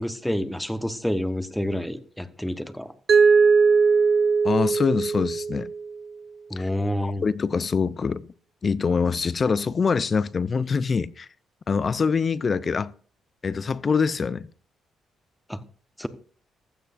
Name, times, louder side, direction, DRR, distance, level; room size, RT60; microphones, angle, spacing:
voice 1, 0.0-2.9 6.5-7.2 15.5-15.6 16.0-16.1, equal, 5° left, 1.0 m, -28 dB
Mallet percussion, 3.1-6.0, right 5 dB, 45° right, 0.4 m, -19 dB
voice 2, 4.4-5.7 6.6-6.7 7.0-8.3 8.6-11.3 11.7-12.9 13.4-14.5, left 5 dB, 40° left, 0.5 m, -24 dB
16.0 x 12.5 x 2.5 m
cardioid pair, 90°, 0 cm